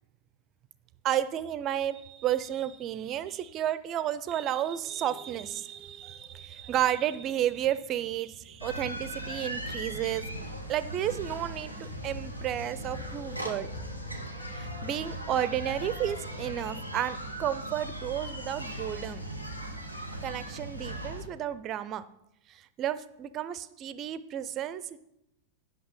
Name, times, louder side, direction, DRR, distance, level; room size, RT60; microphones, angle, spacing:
voice 1, 1.0-10.3 10.7-13.7 14.6-19.2 20.2-22.0 22.5-25.0, right 11 dB, 35° right, 15 dB, 0.5 m, -32 dB
sound 1, 6.0-16.4, left 3 dB, 45° left, 3.3 m, -48 dB
sound 2, 8.6-21.3, right 1 dB, 90° left, 1.0 m, -38 dB
8.6 x 5.7 x 5.6 m, 0.83 s
figure-of-eight pair, 90°, 0 cm